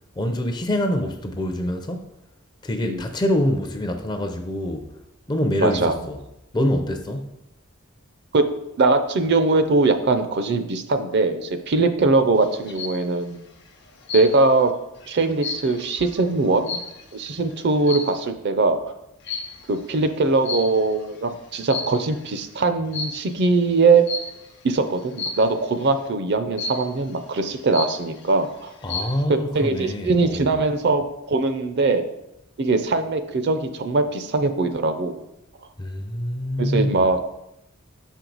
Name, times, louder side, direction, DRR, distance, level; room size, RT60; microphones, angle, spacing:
voice 1, 0.2-2.1 2.6-4.9 5.3-6.2 6.5-7.4 28.8-30.5 35.8-37.0, left 1 dB, 20° left, 0.4 m, -25 dB
voice 2, 5.6-5.9 8.3-8.5 8.8-13.4 14.1-14.7 15.1-16.8 17.1-18.8 19.7-24.0 24.6-28.7 29.3-32.0 32.6-35.2 36.6-37.2, right 3 dB, 50° right, 0.5 m, -21 dB
sound 1, 12.4-13.0 14.1-14.6 15.0-17.3 17.8-18.3 19.3-19.7 20.5-21.1 21.5-22.2 22.9-23.3 24.1-24.5 25.2-25.6 26.6-27.1 27.5-27.6 27.7-28.3 28.7-29.2, left 4 dB, 50° left, 0.8 m, -32 dB
6.3 x 4.5 x 3.9 m
head